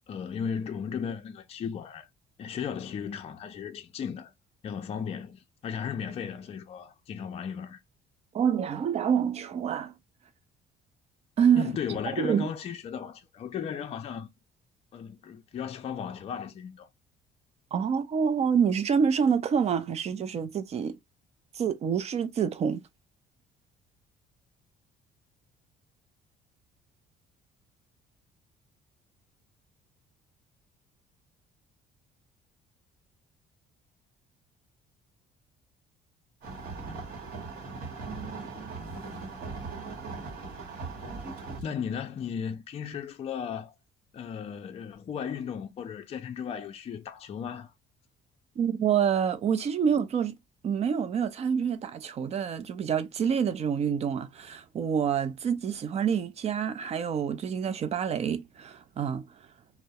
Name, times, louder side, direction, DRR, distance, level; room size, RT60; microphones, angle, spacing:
voice 1, 0.1-2.1 2.4-4.3 4.6-7.8 11.6-14.3 14.9-16.9 41.6-43.7 44.1-47.7, left 7 dB, 35° left, 0.4 m, -35 dB
voice 2, 8.3-9.9 11.4-11.8 12.2-12.5 17.7-21.0 21.5-22.8 48.6-50.4 50.6-59.3, right 7 dB, 40° right, 0.4 m, -27 dB
sound 1, 36.4-41.6, right 4 dB, 60° right, 1.0 m, -39 dB
2.2 x 2.0 x 2.7 m
cardioid pair, 110°, 17 cm